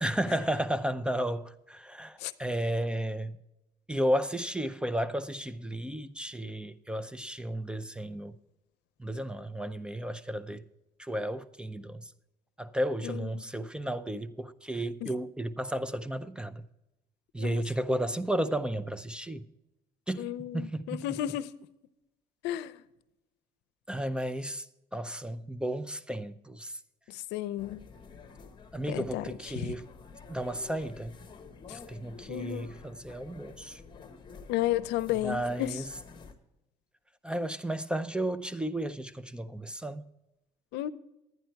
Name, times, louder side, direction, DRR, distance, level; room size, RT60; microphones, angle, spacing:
voice 1, 0.0-3.4 3.9-8.4 9.0-10.6 11.0-12.1 12.6-16.6 17.3-19.5 20.1-21.2 23.9-24.7 24.9-26.8 28.7-29.9 30.3-31.2 31.7-33.8 35.1-35.9 37.2-40.0, right 1 dB, 5° right, 0.5 m, -33 dB
voice 2, 20.2-21.5 22.4-22.7 27.1-27.8 28.9-29.2 29.6-29.7 32.3-32.7 34.5-35.7 40.7-40.9, left 14 dB, 90° left, 0.6 m, -32 dB
sound 1, 27.6-36.3, left 5 dB, 25° left, 1.3 m, -49 dB
11.5 x 9.3 x 4.5 m
cardioid pair, 110°, 17 cm